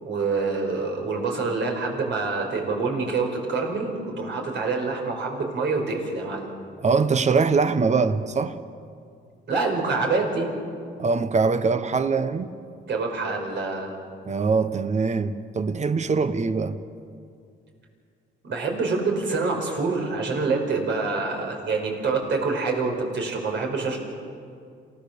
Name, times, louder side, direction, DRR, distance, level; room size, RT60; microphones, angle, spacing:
voice 1, 0.0-6.5 9.5-10.5 12.9-13.9 18.4-24.0, right 4 dB, 65° right, 5.2 m, -26 dB
voice 2, 6.8-8.6 11.0-12.5 14.2-16.8, right 4 dB, 35° right, 1.2 m, -23 dB
28.0 x 17.0 x 6.9 m
cardioid pair, 90°, 20 cm